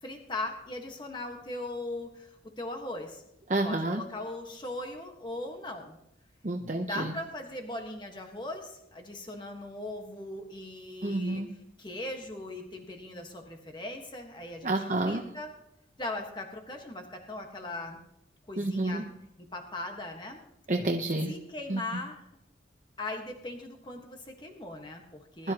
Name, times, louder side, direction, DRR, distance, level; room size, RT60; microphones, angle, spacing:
voice 1, 0.0-3.2 3.6-6.0 6.8-11.4 11.8-15.5 16.0-18.0 18.5-19.0 19.5-20.4 21.3-22.2 23.0-25.5, left 2 dB, 25° left, 3 dB, 1.4 m, -39 dB
voice 2, 3.5-4.0 6.4-7.1 11.0-11.5 14.6-15.2 18.6-19.0 20.7-21.3 21.7-21.8 25.4-25.5, right 2 dB, 40° right, 2 dB, 0.9 m, -29 dB
20.5 x 12.5 x 3.0 m, 0.82 s
head